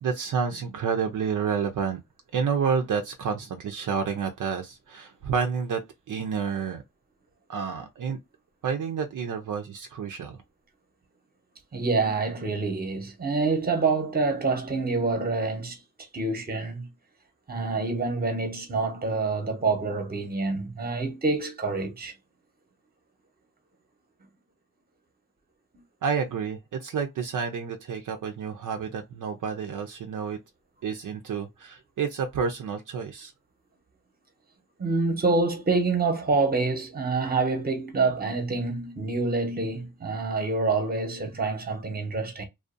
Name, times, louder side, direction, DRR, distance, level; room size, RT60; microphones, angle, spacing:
voice 1, 0.0-2.0 2.3-5.8 6.1-6.8 7.5-8.2 8.6-10.4 26.0-30.4 30.8-33.3, right 6 dB, 65° right, 0.5 m, -29 dB
voice 2, 11.7-15.8 16.1-16.9 17.5-22.1 34.8-42.4, right 3 dB, 30° right, 0.9 m, -27 dB
2.5 x 2.3 x 2.4 m
cardioid pair, 90°, 33 cm